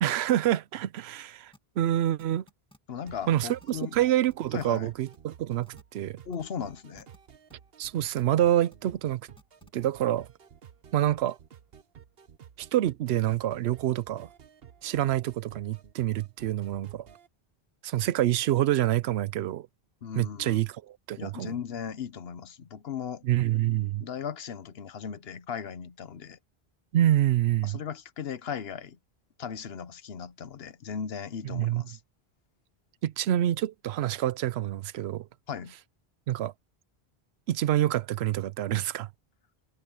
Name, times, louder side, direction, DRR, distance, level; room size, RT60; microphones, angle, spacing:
voice 1, 0.0-2.4 3.3-6.2 7.8-9.2 9.7-10.3 10.9-11.4 12.6-14.3 14.8-17.1 17.8-19.7 20.2-21.5 23.2-24.0 26.9-27.8 31.5-31.8 33.0-35.3 36.3-36.5 37.5-39.1, right 12 dB, 85° right, 0.8 m, -27 dB
sound 1, 1.5-1.6 2.2-2.8 3.1-3.2 3.4-4.0 4.2-4.8 5.1-5.2 5.6-5.8 6.3-6.4 7.0-7.2 7.5-7.6 8.0-8.8 9.4-9.7, equal, 5° left, 1.9 m, -56 dB
voice 2, 2.9-4.0 4.5-4.9 6.2-7.1 20.0-20.6 21.2-23.2 24.0-26.4 27.6-29.0 29.4-32.0 35.5-35.7, left 7 dB, 75° left, 1.1 m, -37 dB
sound 2, 3.1-17.3, right 8 dB, 70° right, 1.1 m, -53 dB
omnidirectional pair, 1.0 m